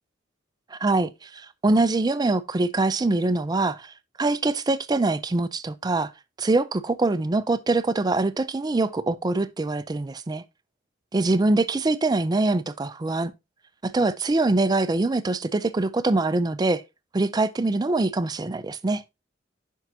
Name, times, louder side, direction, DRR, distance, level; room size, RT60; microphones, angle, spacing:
voice 1, 0.7-6.1 6.4-10.4 11.1-13.3 13.8-16.8 17.1-19.0, right 2 dB, 20° right, 0.4 m, -24 dB
10.5 x 4.5 x 2.7 m
head